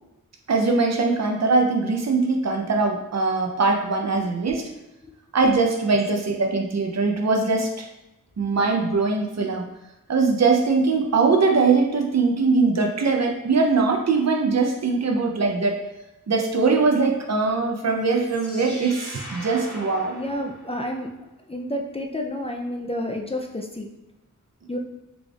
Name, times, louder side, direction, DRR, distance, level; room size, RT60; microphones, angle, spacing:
voice 1, 0.5-4.6 5.3-7.9 8.4-9.7 10.1-15.8 16.3-20.1, right 4 dB, 55° right, 3 dB, 0.6 m, -21 dB
sound 1, 18.0-21.1, equal, 45° left, 1.3 m, -41 dB
voice 2, 20.1-23.9 24.7-24.8, left 1 dB, 20° left, 1 dB, 0.4 m, -30 dB
4.0 x 3.3 x 2.3 m, 0.96 s
wide cardioid pair, 60°, 32 cm